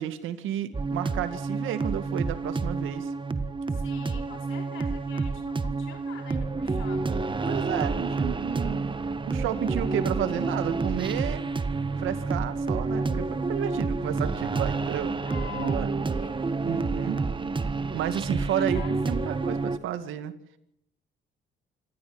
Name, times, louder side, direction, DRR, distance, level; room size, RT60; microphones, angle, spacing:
voice 1, 0.0-3.1 7.5-8.9 9.3-11.4 12.0-15.2 15.5-15.9 16.7-17.2 17.9-20.3, right 11 dB, 90° right, 10 dB, 2.1 m, -32 dB
sound 1, 0.7-19.8, right 3 dB, 25° right, 1.5 m, -29 dB
voice 2, 3.7-7.2 15.2-15.8 16.1-16.5 18.5-19.3, left 8 dB, 85° left, 4 dB, 4.3 m, -45 dB
26.5 x 14.5 x 7.9 m, 0.79 s
cardioid pair, 90°, 20 cm